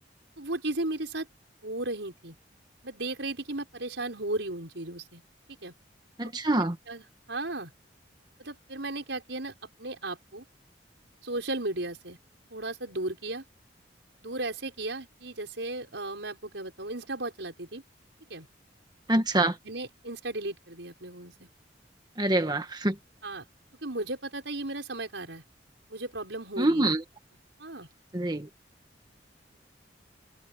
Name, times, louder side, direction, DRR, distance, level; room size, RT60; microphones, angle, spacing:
voice 1, 0.4-1.3 1.6-2.4 2.8-5.2 5.6-5.7 6.2-7.7 8.4-9.5 9.8-10.4 11.2-12.2 12.5-13.4 14.2-17.8 18.3-18.5 19.6-21.5 23.2-23.5 23.8-25.4 25.9-26.9 27.6-27.9, right 2 dB, 80° right, 5.6 m, -35 dB
voice 2, 6.2-6.7 19.1-19.6 22.2-23.0 26.6-27.0 28.1-28.5, right 1 dB, 25° right, 1.4 m, -25 dB
head